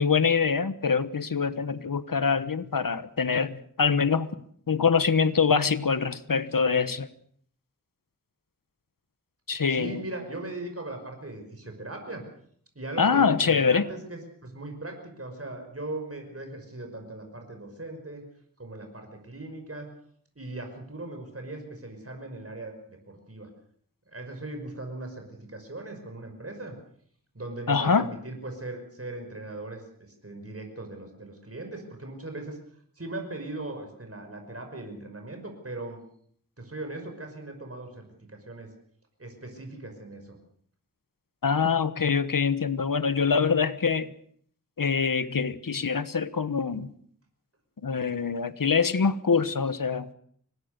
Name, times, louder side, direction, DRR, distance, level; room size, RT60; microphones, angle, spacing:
voice 1, 0.0-4.3 4.7-7.1 9.5-10.0 13.0-13.9 27.7-28.1 41.4-44.1 44.8-46.9 47.8-50.1, left 5 dB, 85° left, 13 dB, 1.3 m, -24 dB
voice 2, 9.7-12.2 12.8-18.2 18.6-19.9 20.4-23.5 24.1-26.8 27.3-32.6 33.0-36.0 36.6-38.7 39.2-40.4, right 2 dB, 45° right, 4 dB, 5.6 m, -39 dB
25.5 x 19.0 x 6.8 m, 0.62 s
wide cardioid pair, 55°, 33 cm